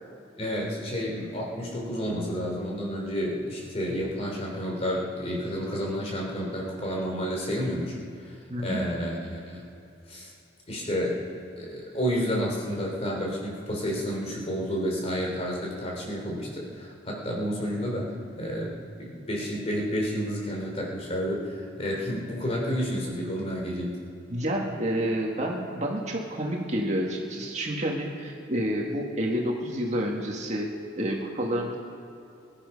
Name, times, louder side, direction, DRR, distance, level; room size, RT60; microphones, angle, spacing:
voice 1, 0.4-8.0 8.2-9.6 10.1-10.3 10.7-11.2 11.6-24.0, equal, 35° left, -2 dB, 3.3 m, -30 dB
voice 2, 8.5-8.8 24.3-30.7 31.0-31.8, equal, 40° right, -1 dB, 1.9 m, -29 dB
23.0 x 11.0 x 5.5 m, 2.8 s
head